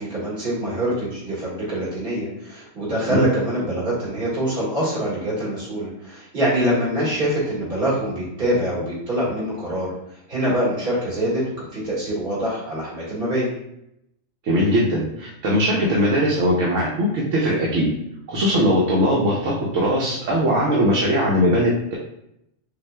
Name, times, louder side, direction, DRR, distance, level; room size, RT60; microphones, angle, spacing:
voice 1, 0.0-9.9 10.3-13.5, right 1 dB, 45° right, -7 dB, 1.8 m, -24 dB
voice 2, 14.4-17.9 18.3-22.0, equal, 80° right, -4 dB, 1.1 m, -20 dB
5.7 x 2.4 x 2.2 m, 0.80 s
omnidirectional pair, 1.3 m